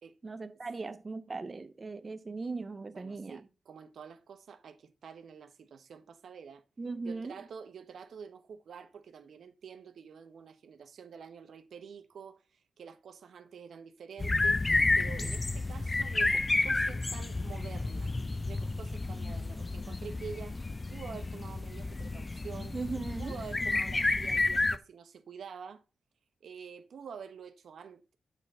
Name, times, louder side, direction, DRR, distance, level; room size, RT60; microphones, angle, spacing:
voice 1, 0.2-3.4 6.8-7.4 22.7-23.4, right 3 dB, 35° right, 0.6 m, -38 dB
voice 2, 2.9-6.6 7.0-14.6 15.0-18.2 18.5-20.6 20.9-22.8 23.2-25.8 26.4-28.2, right 6 dB, 75° right, 1.0 m, -47 dB
sound 1, 14.2-24.8, left 2 dB, 30° left, 0.5 m, -31 dB
8.2 x 3.8 x 6.7 m
cardioid pair, 80°, 0 cm